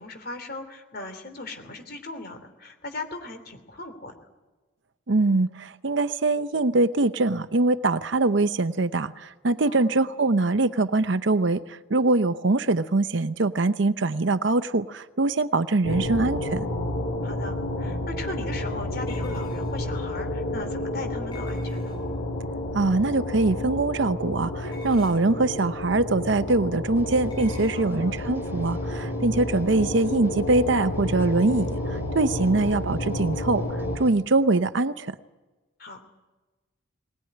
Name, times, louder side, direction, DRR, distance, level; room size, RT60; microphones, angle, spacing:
voice 1, 0.0-4.1 9.6-10.0 15.9-16.1 17.2-22.0 27.7-28.2 32.3-32.7 35.8-36.1, left 2 dB, 50° left, 7 dB, 3.1 m, -38 dB
voice 2, 5.1-11.6 11.9-16.6 22.7-31.8 32.1-33.6 34.0-35.1, right 2 dB, 60° right, 13 dB, 0.8 m, -23 dB
sound 1, 15.8-34.0, left 1 dB, 80° left, 6.6 m, -30 dB
sound 2, 19.1-19.9 21.3-22.2 24.6-25.4 27.3-27.8, left 3 dB, 20° left, 7.7 m, -47 dB
sound 3, 26.9-34.1, equal, 10° right, 3.2 m, -47 dB
20.0 x 19.5 x 9.9 m, 1.2 s
head